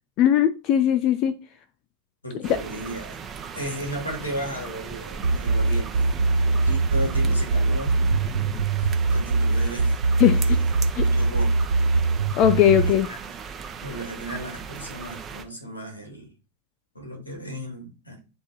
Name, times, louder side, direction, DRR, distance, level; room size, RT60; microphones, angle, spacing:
voice 1, 0.2-1.4 2.4-2.6 10.2-10.6 10.9-11.1 12.4-13.1, left 10 dB, 40° left, 0.5 m, -19 dB
voice 2, 2.2-3.2 3.5-8.0 8.8-10.0 10.4-10.7 11.0-11.6 12.7-13.2 13.8-16.3 16.9-18.2, right 1 dB, 80° left, 2.4 m, -35 dB
sound 1, 2.4-15.5, right 6 dB, 20° right, 0.9 m, -37 dB
sound 2, 5.2-12.9, right 3 dB, 70° right, 0.5 m, -21 dB
10.5 x 3.7 x 2.9 m
figure-of-eight pair, 90°, 0 cm